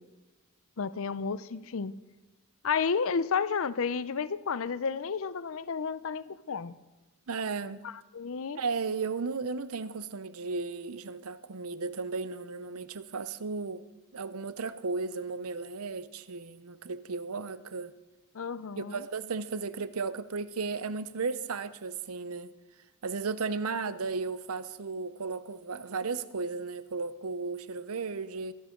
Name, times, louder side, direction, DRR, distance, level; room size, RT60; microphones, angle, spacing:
voice 1, 0.8-1.9 2.6-6.7 7.8-8.6 18.3-19.0, left 5 dB, 65° left, 0.6 m, -32 dB
voice 2, 7.3-7.8 8.6-13.8 14.1-17.9 18.8-22.5 23.0-28.5, right 4 dB, 75° right, 0.7 m, -35 dB
23.0 x 11.0 x 3.8 m
head